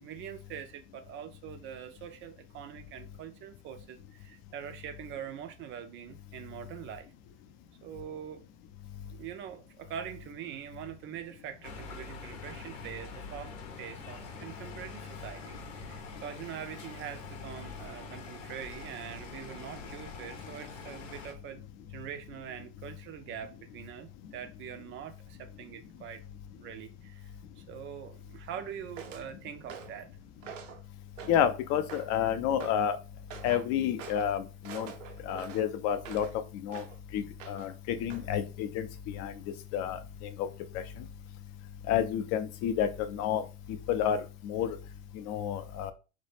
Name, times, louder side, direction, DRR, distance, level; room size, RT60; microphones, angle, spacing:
voice 1, 0.0-7.1 7.8-8.4 9.1-13.5 13.8-26.2 26.6-30.1, right 9 dB, 35° right, 8 dB, 0.4 m, -44 dB
sound 1, 11.6-21.3, left 4 dB, 75° left, 0.8 m, -45 dB
sound 2, 29.0-29.3 29.7-30.0 30.4-30.8 31.2-31.5 31.9-32.2 32.6-32.8 33.3-33.7 34.0-34.3 34.6-36.3 36.7-37.0 37.4-37.8 38.1-38.3, right 8 dB, 85° right, 0.5 m, -45 dB
voice 2, 31.3-33.0 33.4-34.9 35.3-36.3 36.6-36.8 37.1-39.3 39.7-40.0 40.4-40.5 41.9-43.4 43.9-44.8 45.1-45.9, left 9 dB, 50° left, 10 dB, 0.5 m, -30 dB
2.1 x 2.1 x 3.1 m, 0.31 s
hypercardioid pair, 90°, 38 cm